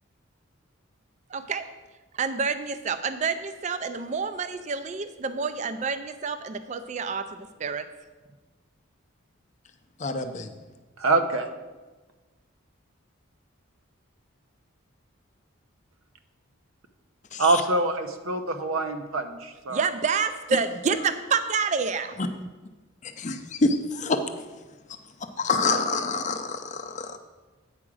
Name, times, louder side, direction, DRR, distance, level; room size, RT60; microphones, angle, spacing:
voice 1, 1.3-1.7 2.1-7.9 19.7-22.2, right 5 dB, 35° right, 11 dB, 0.4 m, -28 dB
voice 2, 10.0-10.5 17.3-17.6 23.0-24.2 25.2-27.2, left 3 dB, 35° left, 8 dB, 0.5 m, -27 dB
voice 3, 11.0-11.5 17.4-19.8, right 2 dB, 80° right, 7 dB, 0.7 m, -25 dB
8.8 x 4.8 x 6.2 m, 1.2 s
head